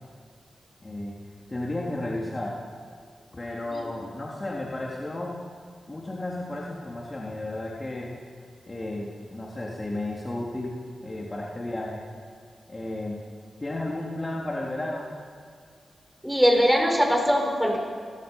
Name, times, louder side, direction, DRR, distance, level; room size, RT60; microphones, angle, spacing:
voice 1, 0.8-1.2 1.5-2.6 3.3-5.4 5.9-8.1 8.7-10.8 11.0-12.0 12.7-13.2 13.6-15.1, left 1 dB, 30° left, -3 dB, 3.7 m, -33 dB
voice 2, 16.2-17.8, equal, ahead, 1 dB, 7.0 m, -21 dB
29.0 x 17.5 x 5.7 m, 2.1 s
cardioid pair, 50°, 0 cm